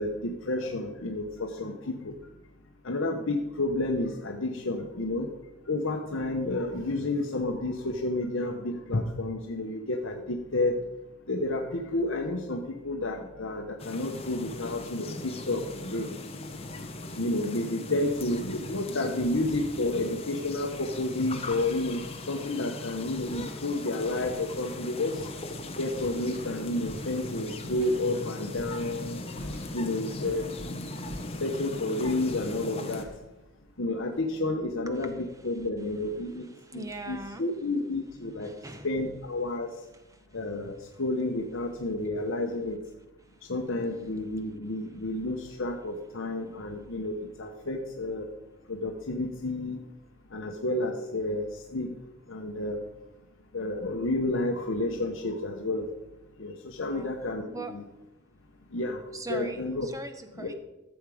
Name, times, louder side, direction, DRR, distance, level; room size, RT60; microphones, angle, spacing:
voice 1, 0.0-2.1 2.8-5.3 5.7-10.8 11.3-16.1 17.2-25.2 25.8-29.2 29.7-30.7 31.4-33.1 33.8-36.4 36.7-38.5 38.8-39.7 40.3-42.8 43.5-48.3 48.7-49.8 50.3-51.9 52.3-52.8 53.5-55.9 56.4-57.8 58.7-59.0 59.3-59.9 60.4-60.5, left 2 dB, 60° left, 2 dB, 1.0 m, -30 dB
sound 1, 13.8-33.0, left 2 dB, 25° left, 0.9 m, -39 dB
sound 2, 22.3-34.9, equal, 60° right, 4.9 m, -49 dB
voice 2, 36.5-37.4 38.4-38.9 40.1-40.2 56.8-57.1 57.5-57.8 59.1-60.5, right 2 dB, 15° right, 8 dB, 0.8 m, -40 dB
14.5 x 7.2 x 4.9 m, 0.97 s
head